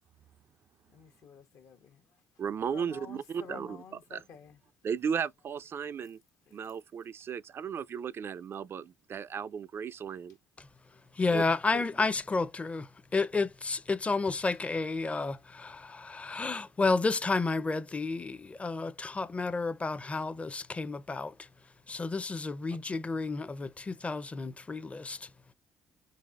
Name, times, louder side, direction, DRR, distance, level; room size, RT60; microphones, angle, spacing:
voice 1, 0.9-2.1 2.6-4.6 6.5-6.6 14.2-14.6, left 6 dB, 65° left, 1.1 m, -51 dB
voice 2, 2.4-3.8 4.1-4.2 4.8-6.2 6.5-10.4 11.3-11.4 11.7-11.8, right 7 dB, 45° right, 0.4 m, -35 dB
voice 3, 11.2-21.3 21.9-25.3, left 3 dB, 25° left, 0.6 m, -31 dB
4.5 x 4.0 x 2.5 m
supercardioid pair, 65°, 6 cm